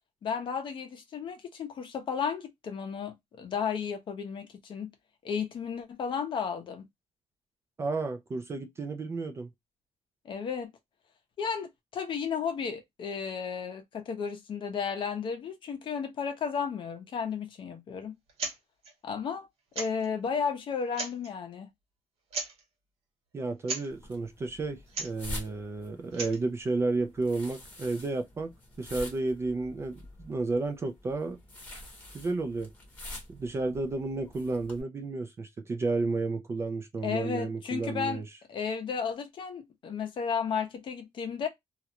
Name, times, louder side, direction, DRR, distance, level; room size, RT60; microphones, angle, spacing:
voice 1, 0.2-4.9 5.2-6.8 10.2-10.7 11.4-18.2 19.0-19.5 19.8-21.7 37.0-38.2 38.5-41.5, left 6 dB, 45° left, 0.7 m, -33 dB
voice 2, 7.8-9.5 23.3-28.5 28.8-31.4 32.1-32.7 33.3-38.3, right 3 dB, 25° right, 0.3 m, -32 dB
sound 1, 18.3-18.6 18.8-18.9 19.7-20.1 20.8-21.3 22.3-22.6 23.6-23.9 24.9-25.2 26.0-26.4, right 3 dB, 60° right, 1.1 m, -36 dB
sound 2, 23.9-34.8, left 1 dB, 15° left, 1.0 m, -46 dB
2.4 x 2.1 x 2.7 m
cardioid pair, 170°, 11 cm